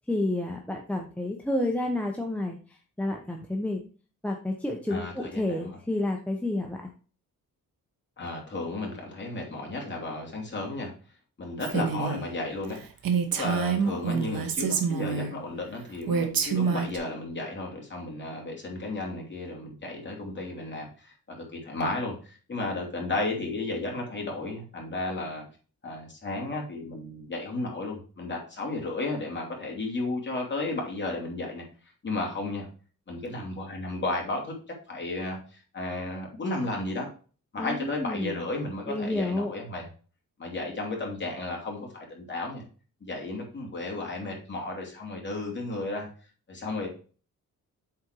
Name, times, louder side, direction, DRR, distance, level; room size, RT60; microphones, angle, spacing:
voice 1, 0.1-2.6 3.0-3.8 4.2-6.9 37.6-38.4 38.9-39.5, left 1 dB, 5° left, 1 dB, 0.9 m, -30 dB
voice 2, 4.9-5.8 8.2-10.9 11.4-12.8 13.3-25.4 25.8-31.6 32.0-32.7 33.1-34.5 34.9-37.1 37.5-39.9 40.4-42.6 43.0-46.1 46.5-46.9, left 2 dB, 30° left, -1 dB, 2.9 m, -33 dB
Female speech woman speaking, 11.6-12.2 12.6-12.7 13.0-15.3 16.1-17.0, right 6 dB, 85° right, 1.3 m, -27 dB
7.7 x 4.3 x 4.7 m, 0.38 s
wide cardioid pair, 125°, 34 cm